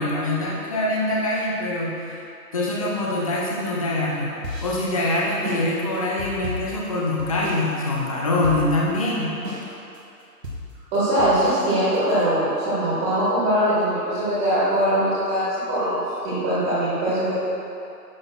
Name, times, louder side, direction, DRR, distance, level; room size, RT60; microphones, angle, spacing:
voice 1, 0.0-2.2 2.5-4.3 4.6-9.3, left 2 dB, 20° left, -4 dB, 0.8 m, -24 dB
sound 1, 4.4-7.7 7.9-8.0 8.4-9.0 9.4-10.0 10.4-12.2, left 1 dB, 75° right, 2.1 m, -34 dB
voice 2, 10.9-17.3, right 1 dB, 15° right, -11 dB, 2.1 m, -22 dB
11.0 x 3.9 x 6.2 m, 2.7 s
figure-of-eight pair, 145°, 49 cm